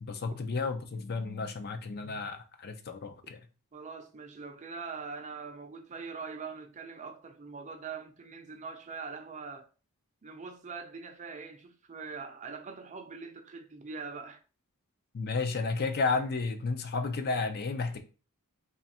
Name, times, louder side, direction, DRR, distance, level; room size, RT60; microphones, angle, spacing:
voice 1, 0.0-3.4 15.1-18.0, left 4 dB, 45° left, 0.5 m, -32 dB
voice 2, 3.7-9.7 10.2-14.4, right 5 dB, 35° right, 0.5 m, -42 dB
3.2 x 2.4 x 4.1 m
head